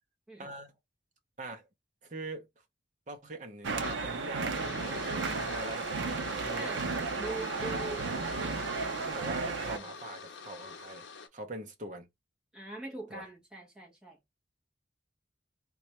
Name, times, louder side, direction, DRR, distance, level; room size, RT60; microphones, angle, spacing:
voice 1, 0.4-0.7 1.4-1.7 2.0-2.5 3.1-6.7 9.0-11.0 11.3-12.1 13.1-13.3, right 2 dB, 40° right, 0.7 m, -43 dB
sound 1, 3.6-9.8, right 4 dB, 80° right, 0.5 m, -34 dB
sound 2, 3.8-11.3, left 5 dB, 75° left, 0.6 m, -45 dB
voice 2, 7.2-8.1 12.5-14.2, right 2 dB, 5° right, 0.9 m, -41 dB
4.1 x 2.3 x 2.9 m
head